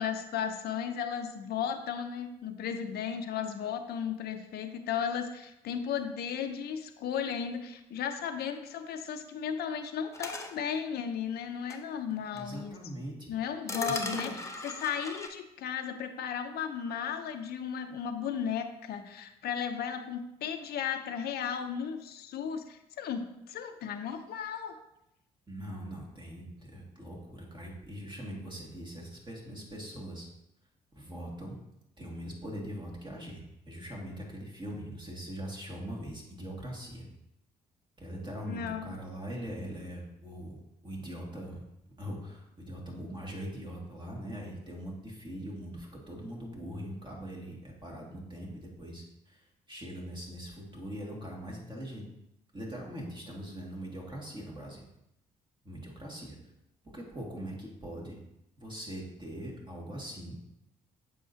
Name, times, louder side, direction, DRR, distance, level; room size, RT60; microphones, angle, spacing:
voice 1, 0.0-12.8 13.3-24.8 38.5-38.9, left 7 dB, 55° left, 8 dB, 0.7 m, -35 dB
sound 1, 10.1-10.5 11.7-11.8 12.4-12.5 13.7-15.3, left 2 dB, 15° left, 0.9 m, -38 dB
voice 2, 12.3-13.3 13.9-14.3 25.5-30.3 31.0-31.6 32.0-37.1 38.0-40.6 40.8-41.6 42.0-52.1 52.5-54.8 55.6-56.4 56.8-58.2 58.6-60.4, equal, 25° right, -2 dB, 2.2 m, -41 dB
7.2 x 5.4 x 2.8 m, 0.83 s
hypercardioid pair, 50°, 19 cm